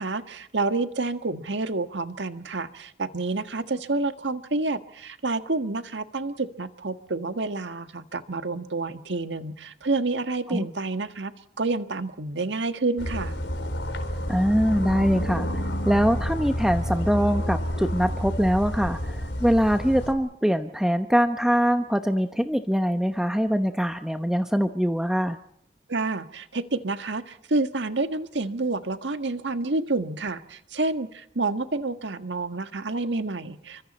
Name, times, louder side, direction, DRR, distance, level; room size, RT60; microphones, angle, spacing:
voice 1, 0.0-11.3 11.6-13.3 25.9-33.8, right 3 dB, 85° right, 9 dB, 1.6 m, -29 dB
sound 1, 13.0-20.1, equal, 85° left, 4.1 m, -29 dB
voice 2, 14.3-25.4, equal, 5° right, 7 dB, 0.9 m, -23 dB
29.5 x 24.5 x 4.3 m, 0.67 s
head